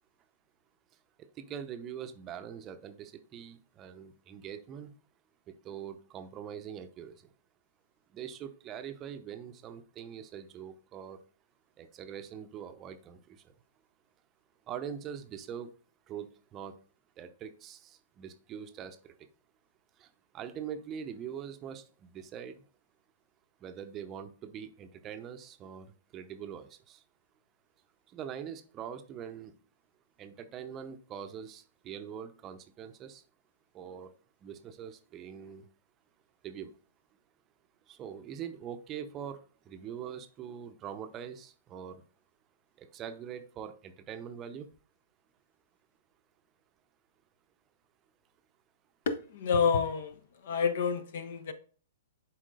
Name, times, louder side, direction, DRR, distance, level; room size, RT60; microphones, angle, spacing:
voice 1, 1.2-5.0 5.5-7.3 8.1-11.2 11.8-13.5 14.7-15.7 16.1-16.8 17.2-19.2 20.0-22.6 23.6-27.0 28.1-29.6 30.2-33.2 33.7-34.1 34.4-35.7 36.4-36.7 37.9-42.0 42.8-44.7, right 8 dB, 25° right, 0.7 m, -43 dB
voice 2, 49.1-50.1 50.4-51.5, left 6 dB, 55° left, 0.8 m, -28 dB
11.0 x 4.4 x 2.5 m
figure-of-eight pair, 110°, 0 cm